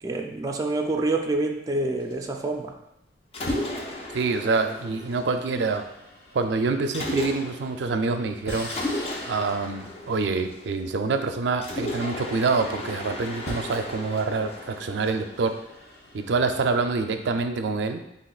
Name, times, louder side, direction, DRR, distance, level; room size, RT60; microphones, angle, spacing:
voice 1, 0.0-2.7, right 2 dB, 20° right, 2 dB, 0.4 m, -27 dB
sound 1, 2.2-2.5 3.5-12.5 13.2-17.4, left 1 dB, 60° left, 1.3 m, -44 dB
Mechanisms, 3.3-5.8 6.9-7.8 8.7-11.0 11.6-15.8, left 1 dB, 35° left, 0.6 m, -34 dB
voice 2, 4.1-5.9 6.3-8.7 9.2-15.5 16.1-18.0, right 4 dB, 85° right, 8 dB, 0.4 m, -26 dB
7.3 x 2.9 x 2.4 m, 0.85 s
head